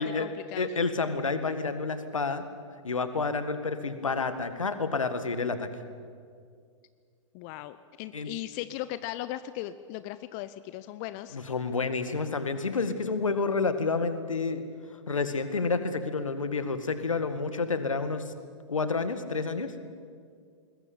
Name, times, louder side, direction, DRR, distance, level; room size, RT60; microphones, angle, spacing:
voice 1, 0.0-0.7 7.3-11.4, left 14 dB, 35° left, 14 dB, 0.7 m, -38 dB
voice 2, 0.6-2.4 2.8-5.7 8.1-8.3 11.3-14.6 15.1-18.3 18.7-19.7, left 4 dB, 80° left, 10 dB, 2.0 m, -29 dB
21.0 x 20.5 x 8.8 m, 2.2 s
figure-of-eight pair, 105°, 17 cm